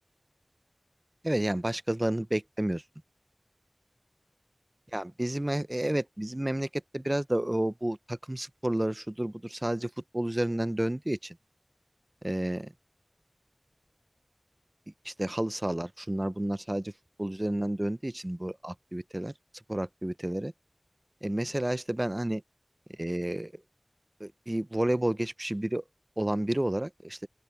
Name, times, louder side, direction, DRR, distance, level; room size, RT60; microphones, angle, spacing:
voice 1, 1.2-2.8 4.9-11.4 12.2-12.7 15.0-16.9 17.2-19.3 19.7-20.5 21.2-22.4 22.9-23.6 24.2-25.8 26.2-27.3, right 1 dB, 30° right, 0.6 m, -30 dB
open air
wide cardioid pair, 40°, 0 cm